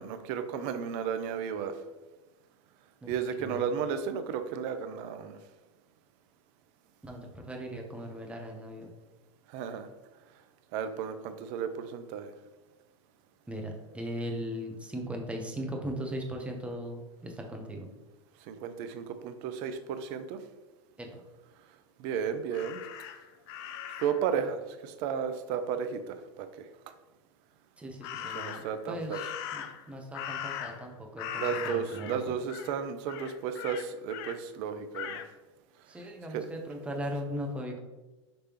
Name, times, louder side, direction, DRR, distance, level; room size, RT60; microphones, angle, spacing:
voice 1, 0.0-1.8 3.1-5.4 9.5-9.9 10.7-12.3 18.5-20.4 22.0-22.8 24.0-26.5 28.3-29.2 31.4-35.2 36.3-36.5, right 7 dB, 50° right, 9 dB, 0.5 m, -33 dB
voice 2, 3.0-3.7 7.0-8.9 13.5-17.9 21.0-21.2 27.8-32.2 35.9-37.8, equal, 10° right, 1 dB, 0.8 m, -38 dB
Crow, 22.5-24.3 28.0-28.8 29.1-30.9 31.2-32.2 32.5-32.8 33.1-34.4 34.9-35.3, left 9 dB, 55° left, 0.4 m, -39 dB
5.3 x 3.2 x 3.0 m, 1.1 s
hypercardioid pair, 95°, 16 cm